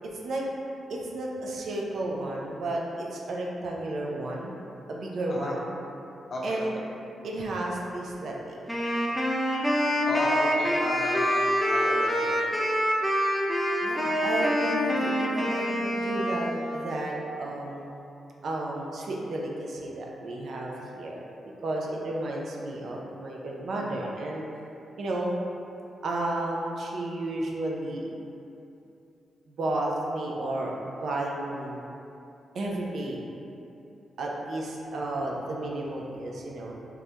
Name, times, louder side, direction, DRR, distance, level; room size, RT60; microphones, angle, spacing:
voice 1, 0.0-0.4 0.9-4.6 4.9-5.7 6.4-6.8 7.2-8.6 13.8-18.0 18.4-21.2 21.6-24.5 25.0-25.4 26.0-28.1 29.5-31.8 32.5-33.2 34.2-36.8, right 2 dB, 70° right, -2 dB, 0.3 m, -32 dB
voice 2, 6.3-6.8 10.1-12.5, left 1 dB, 60° left, -4 dB, 0.5 m, -33 dB
Wind instrument woodwind instrument, 8.7-16.8, equal, 5° left, 0.4 m, -26 dB
2.3 x 2.0 x 2.8 m, 2.8 s
supercardioid pair, 45°, 0 cm